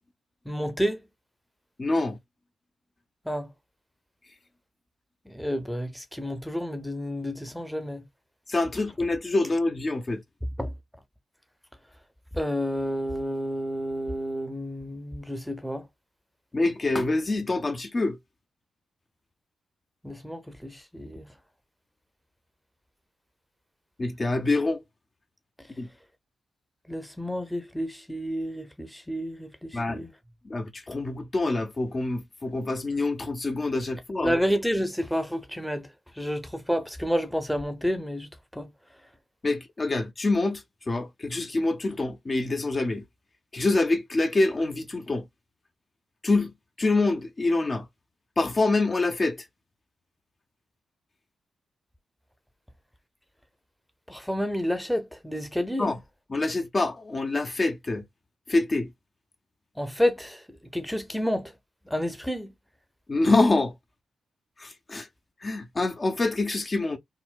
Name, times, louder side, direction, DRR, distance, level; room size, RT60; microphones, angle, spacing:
voice 1, 0.5-1.0 3.3-3.5 5.3-8.0 10.6-10.7 12.3-15.8 20.0-21.2 26.9-30.1 34.2-35.9 36.2-38.7 54.1-55.9 59.8-60.4 60.7-61.5 61.9-62.5, equal, 5° left, 0.8 m, -30 dB
voice 2, 1.8-2.2 8.5-10.2 16.5-18.2 24.0-24.8 25.8-25.9 29.7-30.0 30.5-34.3 39.4-40.6 40.9-43.0 43.5-45.2 46.2-46.5 46.8-47.8 48.4-49.4 55.8-56.0 56.3-58.0 58.5-58.9 63.1-63.7 64.6-65.1 65.4-67.0, left 2 dB, 40° left, 0.7 m, -26 dB
3.9 x 2.2 x 2.5 m
supercardioid pair, 50°, 0 cm